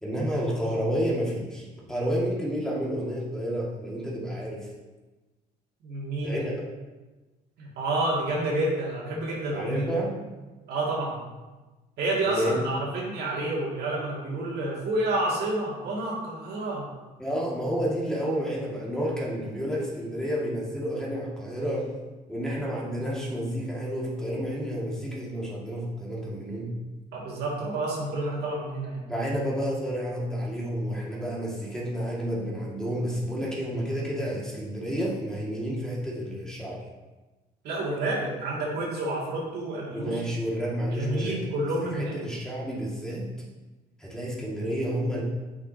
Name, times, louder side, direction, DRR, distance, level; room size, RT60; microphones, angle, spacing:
voice 1, 0.0-4.7 6.2-6.5 9.5-10.2 12.3-12.8 17.2-21.9 22.3-26.7 29.1-36.8 39.9-41.4 41.9-43.3 44.0-45.2, equal, 5° left, -4 dB, 1.9 m, -30 dB
voice 2, 5.8-6.4 7.6-10.0 10.7-11.2 12.0-16.9 27.1-29.1 37.6-40.2 40.9-42.2, right 2 dB, 70° right, -4 dB, 2.2 m, -29 dB
8.3 x 5.9 x 2.8 m, 1.2 s
supercardioid pair, 85°, 17 cm